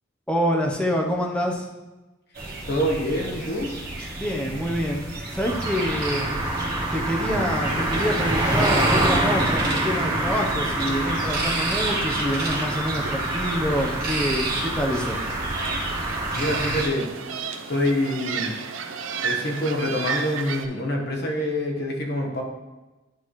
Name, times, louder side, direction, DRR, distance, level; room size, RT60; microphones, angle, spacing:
voice 1, 0.3-1.7 4.1-6.3 6.9-15.2, equal, 5° left, 0 dB, 0.8 m, -26 dB
sound 1, 2.3-16.9, right 2 dB, 50° right, 1.2 m, -32 dB
voice 2, 2.7-3.7 16.3-17.1 17.7-18.6 19.2-22.4, left 1 dB, 55° left, 1 dB, 1.1 m, -26 dB
sound 2, 5.4-16.8, right 1 dB, 20° right, 1.3 m, -26 dB
sound 3, 7.6-20.7, right 5 dB, 80° right, 0.6 m, -35 dB
10.5 x 4.1 x 3.1 m, 1.1 s
head